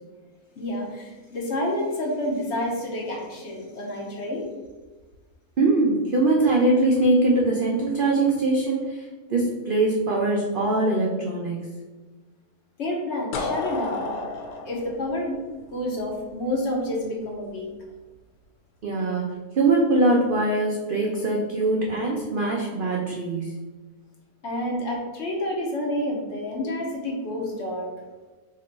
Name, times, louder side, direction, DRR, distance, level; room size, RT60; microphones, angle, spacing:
voice 1, 0.6-4.5 12.8-14.2 14.6-15.4 15.7-17.7 24.4-27.9, left 1 dB, 55° left, -2 dB, 1.0 m, -29 dB
voice 2, 5.6-9.0 9.3-11.7 18.8-19.3 19.6-23.6, right 2 dB, 65° right, -1 dB, 0.5 m, -22 dB
sound 1, 13.3-16.2, left 3 dB, 80° left, 1.1 m, -31 dB
2.9 x 2.9 x 4.4 m, 1.3 s
omnidirectional pair, 1.5 m